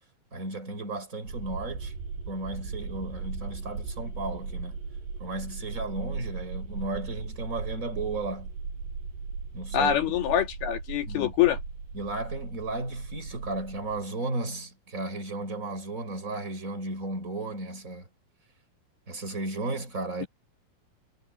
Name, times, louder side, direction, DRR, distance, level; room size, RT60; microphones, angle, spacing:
voice 1, 0.3-1.9 2.3-4.8 5.2-8.5 9.5-10.0 11.1-11.3 11.9-18.1 19.1-20.3, right 2 dB, 20° right, 5.2 m, -34 dB
sound 1, 1.2-14.0, right 4 dB, 70° right, 9.3 m, -38 dB
voice 2, 9.7-11.6, left 10 dB, 65° left, 3.8 m, -25 dB
omnidirectional pair, 5.0 m